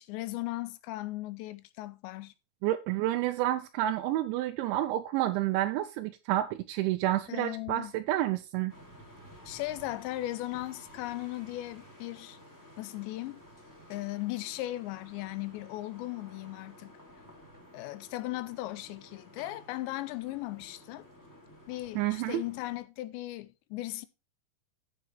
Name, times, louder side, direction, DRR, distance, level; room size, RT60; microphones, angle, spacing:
voice 1, 0.0-2.3 7.3-7.9 9.5-12.4 12.8-13.4 13.9-17.0 17.7-21.1 21.7-24.1, left 17 dB, 80° left, 2.7 m, -37 dB
voice 2, 2.6-8.7 22.0-22.4, right 14 dB, 85° right, 2.9 m, -29 dB
sound 1, 8.7-22.8, equal, 5° left, 2.0 m, -53 dB
15.0 x 5.8 x 3.2 m
omnidirectional pair, 5.4 m